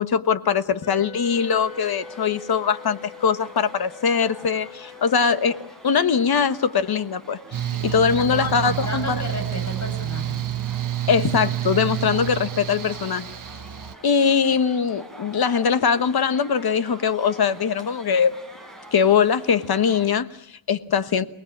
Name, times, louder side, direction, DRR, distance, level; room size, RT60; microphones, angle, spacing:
voice 1, 0.0-5.6 5.8-9.2 11.1-13.3 14.0-18.3 18.9-21.2, left 6 dB, 55° left, 12 dB, 1.3 m, -21 dB
Wind instrument woodwind instrument, 0.8-6.0, left 6 dB, 75° left, 2.9 m, -43 dB
sound 1, 1.2-20.2, right 1 dB, ahead, 5.0 m, -46 dB
Mechanical fan, 7.5-14.0, right 12 dB, 45° right, 1.2 m, -28 dB
voice 2, 7.7-10.5, left 2 dB, 35° left, 5 dB, 7.2 m, -33 dB
28.5 x 19.0 x 8.6 m, 0.71 s
wide cardioid pair, 170°, 46 cm